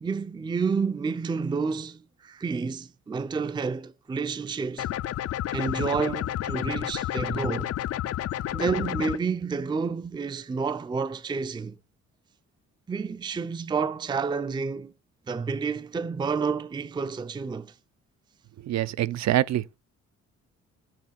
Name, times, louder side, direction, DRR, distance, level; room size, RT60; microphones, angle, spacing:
voice 1, 0.0-4.9 5.5-7.7 8.5-11.8 12.9-14.9 15.3-17.7, right 5 dB, 15° right, 0.4 m, -29 dB
sound 1, 4.8-9.2, left 12 dB, 55° left, 0.4 m, -30 dB
voice 2, 18.6-19.6, right 13 dB, 60° right, 0.6 m, -25 dB
7.6 x 3.4 x 5.8 m
cardioid pair, 90°, 30 cm